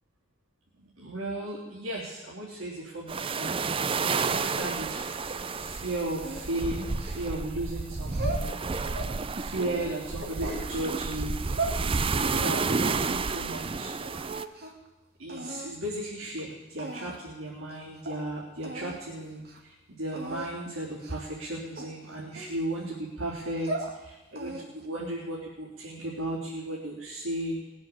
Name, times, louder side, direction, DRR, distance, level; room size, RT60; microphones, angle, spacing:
voice 1, 0.8-3.6 4.2-8.5 9.3-11.8 12.2-14.4 15.2-27.6, right 1 dB, 85° right, -8 dB, 3.8 m, -35 dB
sound 1, 3.1-14.4, right 4 dB, 25° right, 0.5 m, -31 dB
sound 2, 6.2-7.5 8.0-9.1 9.6-10.7 11.2-11.8 12.2-14.0 14.2-14.9 15.3-15.7 16.4-16.5 16.8-17.3 17.7-17.8 18.1-18.2 18.6-19.0 19.4-19.6 20.1-20.5 21.0-21.3 21.8-23.0 23.4-23.9 24.4-24.9, right 2 dB, 50° right, 2.2 m, -38 dB
19.5 x 7.9 x 8.6 m, 1.1 s
head